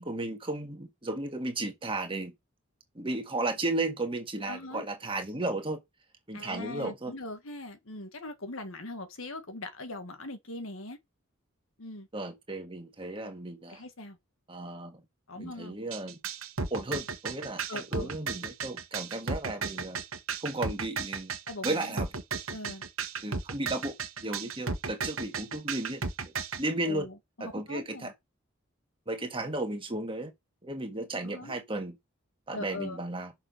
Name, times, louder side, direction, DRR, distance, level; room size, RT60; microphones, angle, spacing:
voice 1, 0.0-2.3 3.0-5.8 6.3-7.1 12.1-13.8 14.5-15.0 15.4-16.2 16.7-20.0 20.4-21.3 21.6-22.1 23.2-23.9 24.2-26.0 26.6-27.1 27.4-28.1 29.1-30.3 30.6-32.0 32.5-33.3, right 2 dB, 25° right, 1.7 m, -34 dB
voice 2, 4.5-4.8 6.3-11.0 11.8-12.1 13.7-14.2 15.3-15.8 17.7-18.1 21.5-22.0 22.5-22.8 26.8-28.1 31.2-31.5 32.5-33.0, left 2 dB, 70° left, 1.7 m, -41 dB
sound 1, 15.9-26.6, right 5 dB, 70° right, 1.3 m, -34 dB
6.6 x 5.9 x 5.3 m
head